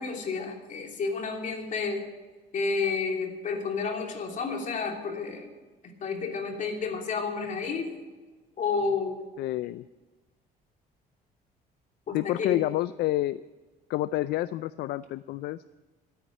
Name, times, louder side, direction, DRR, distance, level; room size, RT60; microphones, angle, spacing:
voice 1, 0.0-2.1 2.5-5.5 6.0-7.9 8.6-9.2 12.1-12.6, left 4 dB, 50° left, 3 dB, 2.9 m, -30 dB
voice 2, 9.4-9.9 12.1-13.4 13.9-15.7, left 15 dB, 75° left, 15 dB, 0.4 m, -29 dB
13.0 x 9.5 x 9.1 m, 1.3 s
cardioid pair, 110°, 17 cm